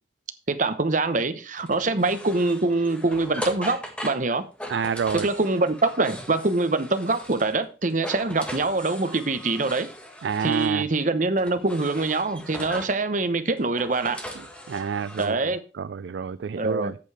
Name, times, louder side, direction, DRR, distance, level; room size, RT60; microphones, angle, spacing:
voice 1, 0.5-4.5 5.2-9.9 10.4-14.2 15.2-15.6 16.5-16.9, right 3 dB, 45° right, 0.9 m, -24 dB
sound 1, 1.6-7.6 7.9-10.8 11.4-13.0 13.6-15.3, left 1 dB, 5° left, 1.5 m, -39 dB
voice 2, 4.7-5.3 10.2-10.8 14.7-15.4 15.7-17.0, right 6 dB, 75° right, 0.4 m, -28 dB
8.4 x 6.9 x 4.8 m
head